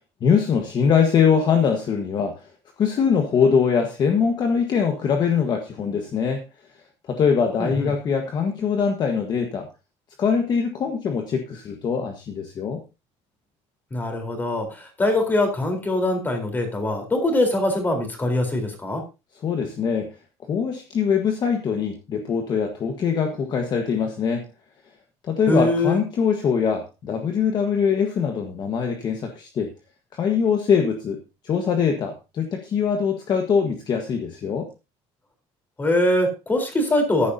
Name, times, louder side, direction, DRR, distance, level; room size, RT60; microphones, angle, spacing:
voice 1, 0.2-2.4 2.8-6.4 7.1-9.7 10.2-12.8 19.4-20.1 20.5-24.4 25.3-29.7 30.1-31.2 31.4-34.7, left 6 dB, 35° left, 4 dB, 1.5 m, -22 dB
voice 2, 7.6-7.9 13.9-19.0 25.5-26.0 35.8-37.3, left 1 dB, 15° left, 4 dB, 4.1 m, -22 dB
14.5 x 11.5 x 2.8 m, 0.28 s
cardioid pair, 155°, 12 cm